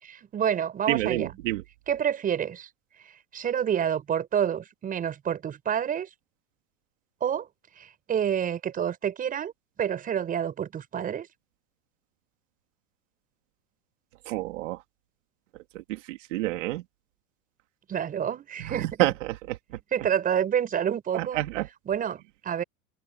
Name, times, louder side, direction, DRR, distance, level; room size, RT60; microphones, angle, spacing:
voice 1, 0.0-1.3 1.9-2.7 3.0-6.1 7.2-7.5 7.8-9.5 9.8-11.3 17.9-19.1 19.9-21.4 21.9-22.6, right 9 dB, 20° right, 7.3 m, -28 dB
voice 2, 0.9-1.6 14.3-14.8 16.1-16.8 19.0-19.1 21.1-21.7, right 17 dB, 85° right, 2.8 m, -27 dB
open air
supercardioid pair, 165°, 36 cm